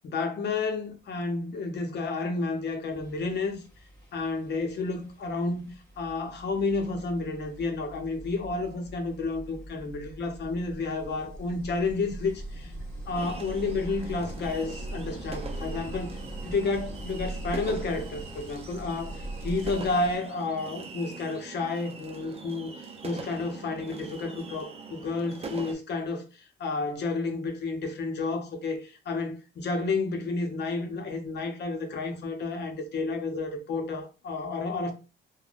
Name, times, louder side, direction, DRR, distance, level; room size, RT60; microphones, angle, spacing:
voice 1, 0.0-3.6 4.1-5.7 6.0-12.7 13.1-22.7 23.0-34.9, left 3 dB, 60° left, 0.8 m, -31 dB
sound 1, 2.4-2.5 2.9-20.2, right 1 dB, 15° left, 1.4 m, -41 dB
sound 2, 13.1-25.7, right 4 dB, 30° right, 0.5 m, -42 dB
3.3 x 2.2 x 2.4 m
cardioid pair, 90°, 20 cm